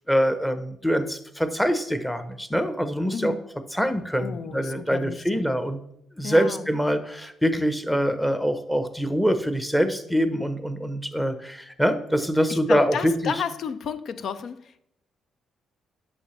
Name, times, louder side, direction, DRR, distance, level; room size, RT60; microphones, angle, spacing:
voice 1, 0.1-3.3 3.7-5.8 6.2-13.3, equal, 5° left, 10 dB, 0.8 m, -24 dB
voice 2, 3.1-3.5 4.2-5.4 6.2-6.7 12.5-14.8, left 7 dB, 65° left, 13 dB, 0.5 m, -32 dB
8.5 x 6.3 x 3.2 m, 0.74 s
cardioid pair, 90°, 0 cm